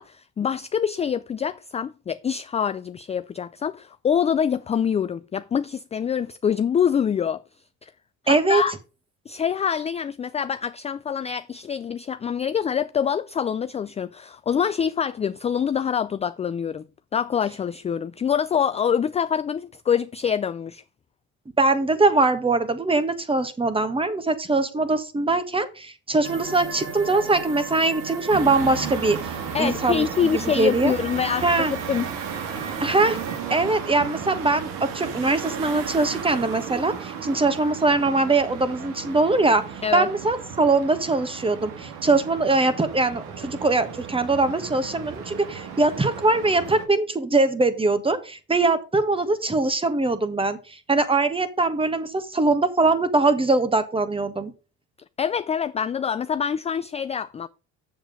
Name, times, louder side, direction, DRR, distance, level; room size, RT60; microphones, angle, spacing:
voice 1, 0.0-7.4 7.8-7.9 8.2-8.7 9.3-16.8 17.1-20.8 29.5-32.1 39.8-40.1 55.2-57.5, left 7 dB, 20° left, 0.3 m, -25 dB
voice 2, 8.3-8.6 21.6-29.3 29.6-30.3 30.6-30.9 31.4-31.7 32.8-33.2 33.5-39.6 39.9-54.5, right 3 dB, 15° right, 1.4 m, -22 dB
sound 1, 26.2-33.4, right 5 dB, 50° right, 2.8 m, -36 dB
sound 2, 28.3-46.9, right 7 dB, 80° right, 2.1 m, -35 dB
7.5 x 7.2 x 5.2 m
cardioid pair, 100°, 33 cm